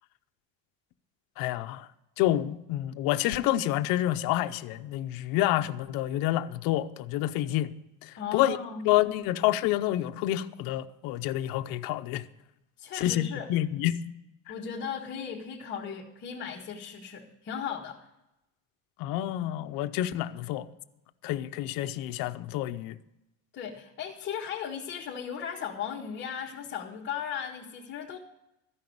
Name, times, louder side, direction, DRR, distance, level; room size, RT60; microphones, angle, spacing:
voice 1, 1.4-1.9 2.2-7.7 8.0-8.6 8.8-12.2 12.9-14.0 14.5-14.6 19.0-20.7 21.2-23.0, left 14 dB, 50° left, 0.6 m, -28 dB
voice 2, 8.2-8.9 12.8-13.5 14.5-18.0 23.5-28.2, left 7 dB, 25° left, 1.0 m, -36 dB
13.5 x 5.6 x 9.2 m
cardioid pair, 165°, 43 cm